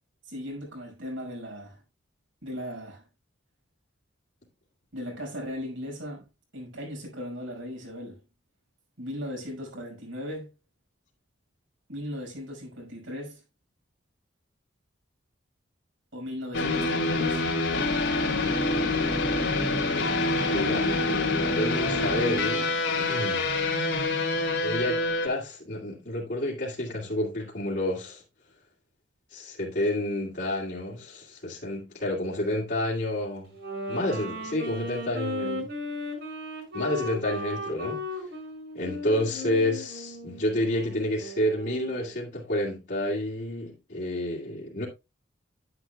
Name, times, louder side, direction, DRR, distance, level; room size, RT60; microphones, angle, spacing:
voice 1, 0.3-1.8 2.4-3.0 4.9-6.3 6.5-8.2 9.0-10.5 11.9-13.4 16.1-17.4, equal, 75° right, 5.6 m, -37 dB
sound 1, 16.5-25.3, left 2 dB, 75° left, 2.9 m, -26 dB
voice 2, 20.5-21.1 21.4-23.5 24.6-28.2 29.3-33.5 33.9-35.7 36.7-38.2 38.7-44.9, left 1 dB, 55° left, 2.3 m, -30 dB
Wind instrument woodwind instrument, 33.5-42.2, left 1 dB, 60° right, 5.4 m, -36 dB
10.5 x 9.9 x 2.2 m
head